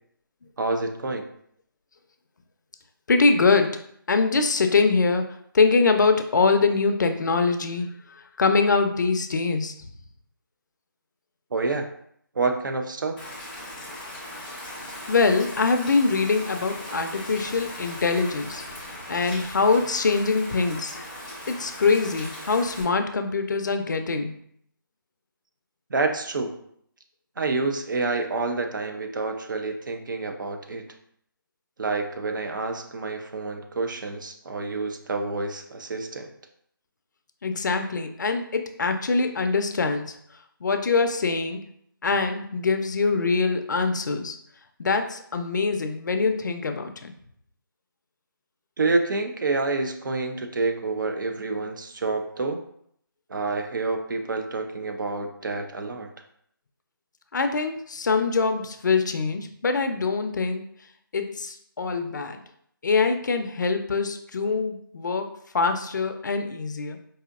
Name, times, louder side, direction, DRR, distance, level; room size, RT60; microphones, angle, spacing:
voice 1, 0.6-1.3 11.5-11.9 12.3-13.2 25.9-26.6 27.4-30.8 31.8-36.3 48.8-52.6 53.3-56.1, right 3 dB, 60° right, 5 dB, 0.6 m, -28 dB
voice 2, 3.1-3.8 4.1-9.7 15.1-18.6 19.1-21.0 21.5-24.3 37.4-40.1 40.6-41.6 42.0-44.4 44.8-47.1 57.3-60.6 61.1-62.4 62.8-65.3 65.5-67.0, left 4 dB, 55° left, 7 dB, 0.5 m, -23 dB
Rain, 13.2-22.8, left 1 dB, 5° left, 0.6 m, -38 dB
4.8 x 2.7 x 2.4 m, 0.68 s
figure-of-eight pair, 155°, 12 cm